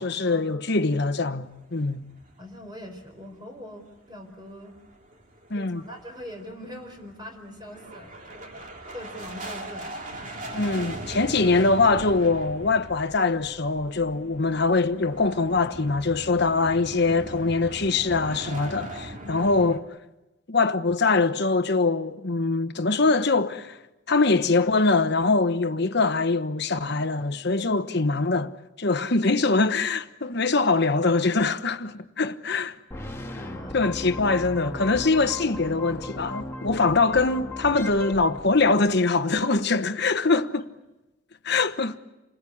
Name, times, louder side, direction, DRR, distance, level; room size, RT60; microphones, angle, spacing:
voice 1, 0.0-2.0 5.5-5.8 10.5-19.8 20.5-23.8 24.1-28.5 28.8-32.8 33.7-40.6 41.4-41.9, left 3 dB, 55° left, 1.1 m, -23 dB
sound 1, 1.5-3.1 3.4-3.5 3.9-4.0 4.4-19.8, right 1 dB, 40° right, 2.6 m, -40 dB
voice 2, 2.4-4.7 5.5-8.6 8.9-10.1 19.2-19.5 27.6-27.7 33.3-33.8 40.3-40.4, left 1 dB, 20° right, 4.6 m, -42 dB
sound 2, 32.9-39.1, left 2 dB, 15° left, 1.9 m, -37 dB
29.0 x 21.0 x 8.6 m
head